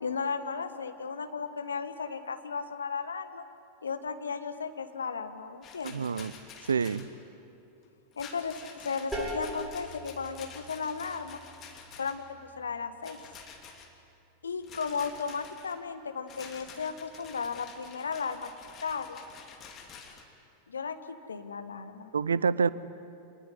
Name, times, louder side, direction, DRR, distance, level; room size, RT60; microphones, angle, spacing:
voice 1, 0.0-3.4 3.8-6.1 8.2-11.4 11.9-12.3 12.6-13.2 14.4-18.5 18.8-19.2 20.7-22.1, left 5 dB, 70° left, 9 dB, 1.5 m, -35 dB
Rattle, 5.6-7.1 8.1-12.3 13.0-13.9 14.6-15.8 16.3-20.2, left 6 dB, 30° left, 2.9 m, -49 dB
voice 2, 5.8-6.3 6.7-7.1 22.1-22.7, right 5 dB, 70° right, 19 dB, 0.7 m, -27 dB
sound 1, 9.1-14.6, right 1 dB, 5° right, 6.3 m, -43 dB
26.5 x 20.0 x 9.9 m, 2.7 s
figure-of-eight pair, 90°, 0 cm